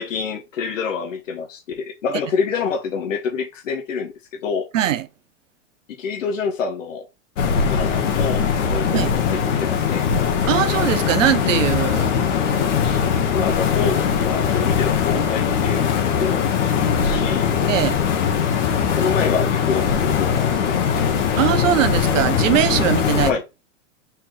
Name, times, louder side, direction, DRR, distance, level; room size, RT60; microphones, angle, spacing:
voice 1, 0.0-4.1 4.4-4.7 5.9-7.1 7.7-10.1 12.0-12.1 12.8-13.0 13.3-15.9 16.2-17.5 19.0-21.1 23.2-23.4, left 5 dB, 85° left, 1.1 m, -27 dB
voice 2, 4.7-5.1 8.9-9.1 10.5-12.2 17.7-18.0 21.4-23.3, right 11 dB, 90° right, 0.7 m, -20 dB
sound 1, 7.4-23.3, left 7 dB, 70° left, 1.4 m, -20 dB
4.3 x 3.8 x 3.2 m
hypercardioid pair, 130°, 37 cm